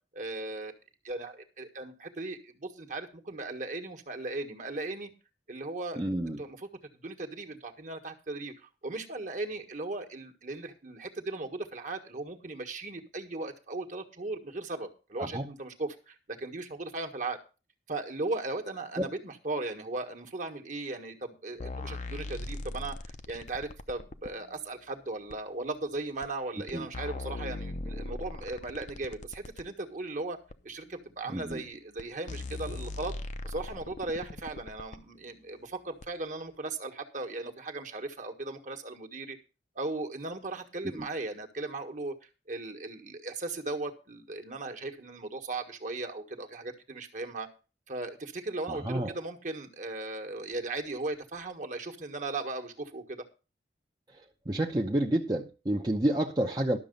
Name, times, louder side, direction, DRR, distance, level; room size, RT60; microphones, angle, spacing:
voice 1, 0.1-0.7 1.0-5.1 5.5-6.0 6.4-6.7 6.9-17.4 17.9-23.0 23.3-30.4 30.6-33.1 33.4-39.4 39.7-47.5 47.9-53.2, right 2 dB, 45° right, 6 dB, 1.5 m, -37 dB
voice 2, 6.0-6.4 15.2-15.5 19.0-19.1 26.7-26.9 31.3-31.6 40.8-41.1 48.7-49.1 54.5-56.8, right 1 dB, 25° right, 0 dB, 0.8 m, -29 dB
sound 1, 21.6-24.3 25.3-25.4 26.2-26.3 26.7-29.7 30.5-30.6 31.5-31.6 32.0-32.1 32.3-35.0 36.0-36.1, left 2 dB, 40° left, 0.7 m, -39 dB
12.0 x 6.7 x 5.3 m, 0.32 s
head